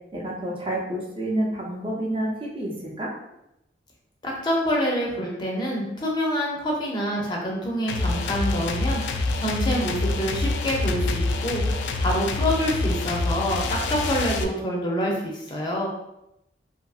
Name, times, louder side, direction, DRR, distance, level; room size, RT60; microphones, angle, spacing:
voice 1, 0.1-2.7 3.0-3.1, right 1 dB, 30° right, -4 dB, 0.6 m, -28 dB
voice 2, 4.2-15.9, equal, 25° left, -2 dB, 0.5 m, -27 dB
sound 1, 7.9-14.4, left 3 dB, 85° left, 0.3 m, -26 dB
2.7 x 2.5 x 2.4 m, 0.84 s
head